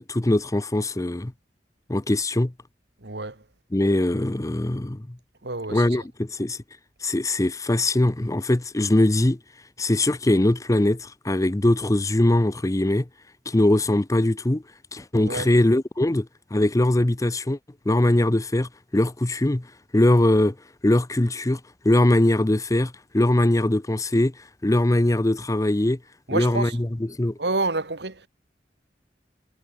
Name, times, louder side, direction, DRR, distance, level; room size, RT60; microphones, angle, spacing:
voice 1, 0.0-1.3 1.9-2.5 3.7-5.2 5.7-6.6 7.0-9.4 9.8-13.1 13.5-14.6 14.9-17.6 17.9-19.7 19.9-20.5 20.8-21.6 21.8-24.3 24.6-26.0 26.3-27.4, left 1 dB, 20° left, 0.7 m, -21 dB
voice 2, 3.0-3.4 5.4-5.9 15.2-15.5 26.3-26.8 27.4-28.3, right 3 dB, 70° right, 2.1 m, -28 dB
head